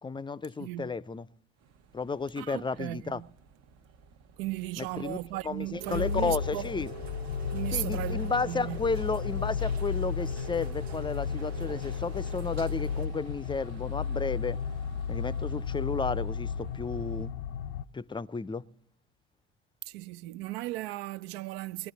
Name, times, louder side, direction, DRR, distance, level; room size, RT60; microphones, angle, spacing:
voice 1, 0.0-1.3 1.9-3.2 4.8-5.2 5.4-6.9 7.7-14.6 15.1-17.3 17.9-18.6, left 4 dB, 15° left, 0.5 m, -33 dB
voice 2, 0.6-0.9 2.4-3.3 4.4-6.9 7.5-8.8 19.9-21.9, right 17 dB, 75° right, 0.5 m, -36 dB
sound 1, 1.6-17.3, right 5 dB, 55° right, 1.1 m, -54 dB
Rain, 5.8-13.1, right 5 dB, 90° right, 1.1 m, -45 dB
sound 2, 5.9-17.8, left 6 dB, 80° left, 0.5 m, -33 dB
20.0 x 11.0 x 4.0 m
hypercardioid pair, 55°, 31 cm